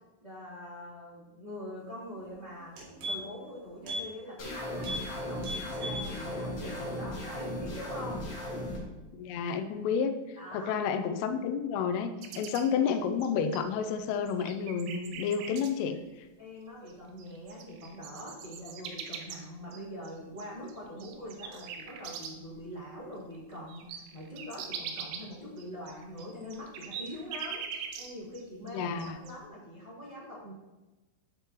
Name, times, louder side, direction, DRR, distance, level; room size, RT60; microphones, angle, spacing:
voice 1, 0.2-2.8 3.0-8.3 10.3-10.7 15.4-15.5 16.4-30.5, equal, 15° right, -11 dB, 1.6 m, -43 dB
sound 1, 2.2-2.3 2.6-3.5 3.8-4.1 4.4-4.5 4.8-5.1 5.4-6.1 6.5-6.6, equal, 60° right, 4.2 m, -37 dB
sound 2, 4.4-8.8, left 1 dB, 60° left, 1.6 m, -37 dB
voice 2, 9.1-10.1 10.5-16.0 28.7-29.2, left 6 dB, 85° left, 7 dB, 3.2 m, -30 dB
sound 3, 12.2-13.9 14.3-15.7 16.9-17.0 17.2-22.6 22.9-23.0 23.3-28.4 28.7-29.3, right 7 dB, 80° right, 2.8 m, -42 dB
13.0 x 5.6 x 3.0 m, 1.1 s
omnidirectional pair, 5.7 m